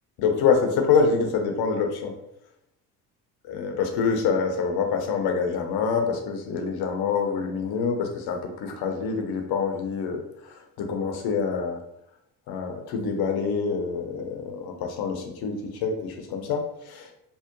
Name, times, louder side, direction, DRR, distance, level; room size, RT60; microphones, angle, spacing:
voice 1, 0.2-2.1 3.5-10.2 10.8-11.8 12.5-15.6 15.8-17.1, left 5 dB, 55° left, 4 dB, 0.6 m, -26 dB
2.7 x 2.1 x 2.5 m, 0.78 s
hypercardioid pair, 60°, 47 cm